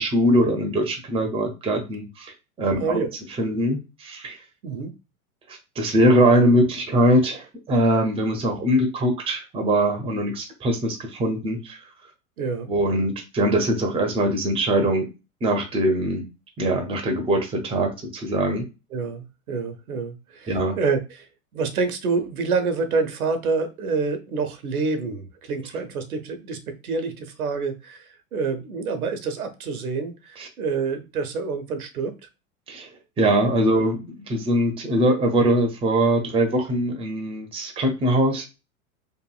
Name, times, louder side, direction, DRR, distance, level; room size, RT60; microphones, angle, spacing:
voice 1, 0.0-2.3 2.6-3.1 3.4-4.4 5.8-11.8 12.7-15.1 15.4-16.3 16.6-18.7 20.5-20.8 30.4-30.5 32.7-32.9 33.2-38.5, right 1 dB, 15° right, 5 dB, 0.6 m, -22 dB
voice 2, 2.8-3.1 4.6-4.9 12.4-12.7 18.9-21.3 21.5-32.1, right 4 dB, 85° right, 9 dB, 0.7 m, -27 dB
2.9 x 2.5 x 2.3 m, 0.28 s
hypercardioid pair, 95°, 43 cm